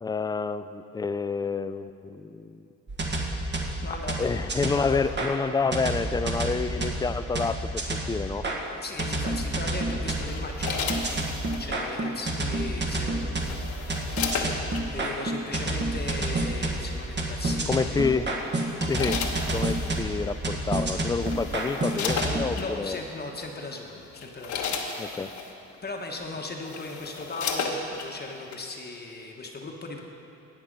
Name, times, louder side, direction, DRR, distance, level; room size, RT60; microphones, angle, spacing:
voice 1, 0.0-2.6 4.2-8.5 17.7-18.3 18.9-19.2 19.5-23.0 25.0-25.3, left 4 dB, 15° left, 12 dB, 0.4 m, -28 dB
sound 1, 2.9-5.3 5.7-8.6 9.0-22.4, right 2 dB, 35° right, 1.6 m, -29 dB
voice 2, 3.8-4.4 4.7-5.1 8.6-13.5 14.9-18.2 22.3-24.8 25.8-30.0, left 2 dB, 30° left, 1 dB, 1.2 m, -37 dB
sound 2, 10.3-11.7 13.0-14.9 15.9-16.1 17.8-18.1 18.6-20.0 20.8-20.9 21.2-22.7 23.4-23.6 24.0-25.5 26.2-26.3 26.6-28.1 28.5-28.6, left 5 dB, 75° left, 1.2 m, -33 dB
17.5 x 5.9 x 5.2 m, 2.8 s
cardioid pair, 90°, 30 cm